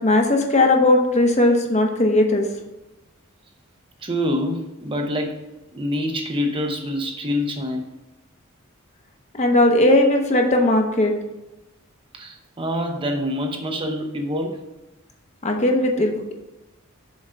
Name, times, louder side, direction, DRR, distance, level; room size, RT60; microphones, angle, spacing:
voice 1, 0.0-2.4 9.3-11.1 15.4-16.3, left 1 dB, 30° left, 3 dB, 0.9 m, -18 dB
voice 2, 4.0-5.4 5.7-7.9 12.1-14.6, left 1 dB, 25° right, 4 dB, 0.7 m, -26 dB
7.2 x 3.9 x 5.5 m, 1.0 s
head